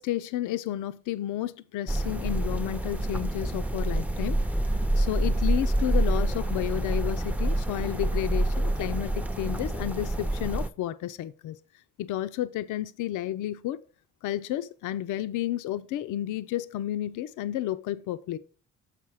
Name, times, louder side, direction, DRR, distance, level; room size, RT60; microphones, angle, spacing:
voice 1, 0.0-4.4 5.0-11.6 12.0-13.8 14.2-18.4, left 13 dB, 80° left, 0.5 m, -31 dB
sound 1, 1.9-10.7, right 1 dB, 5° right, 0.5 m, -27 dB
6.8 x 5.9 x 4.7 m
cardioid pair, 90°, 30 cm